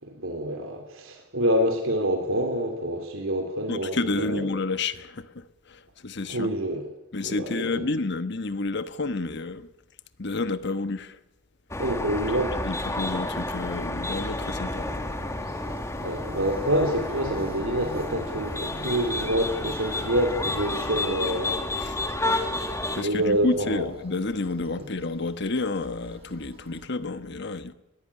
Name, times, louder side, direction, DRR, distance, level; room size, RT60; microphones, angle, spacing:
voice 1, 0.0-4.4 6.3-6.8 7.2-7.9 11.8-12.5 16.0-21.5 22.8-23.9 24.8-24.9, right 1 dB, 90° right, 3.4 m, -27 dB
voice 2, 3.7-6.5 7.1-9.7 10.2-11.2 12.3-14.9 21.8-22.0 22.9-27.7, left 3 dB, 60° left, 1.2 m, -30 dB
sound 1, 11.7-23.0, left 2 dB, 15° left, 1.5 m, -31 dB
Bird / Buzz, 14.2-26.9, equal, 30° right, 6.2 m, -44 dB
21.0 x 15.0 x 10.0 m
head